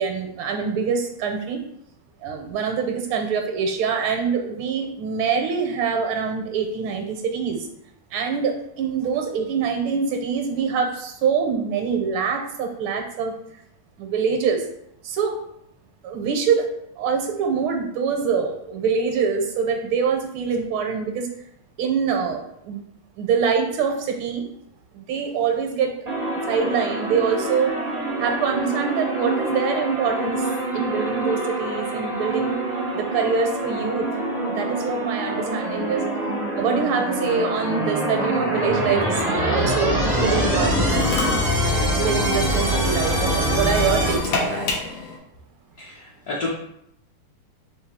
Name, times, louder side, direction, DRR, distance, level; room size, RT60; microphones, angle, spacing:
voice 1, 0.0-1.6 2.2-7.7 8.1-13.3 14.0-14.6 15.0-15.4 16.0-16.7 17.0-21.3 21.8-22.8 23.2-24.4 24.9-25.9 26.5-27.7 28.2-30.5 30.7-32.6 32.9-34.1 34.5-36.0 36.6-41.1 41.9-44.7, right 6 dB, 80° right, 3 dB, 1.5 m, -24 dB
sound 1, 26.1-44.2, right 1 dB, 50° right, 0.4 m, -25 dB
Drill, 40.1-45.2, left 3 dB, 85° left, 1.8 m, -29 dB
voice 2, 45.8-46.5, left 3 dB, 60° left, -5 dB, 1.0 m, -30 dB
4.5 x 2.7 x 4.0 m, 0.76 s
omnidirectional pair, 2.3 m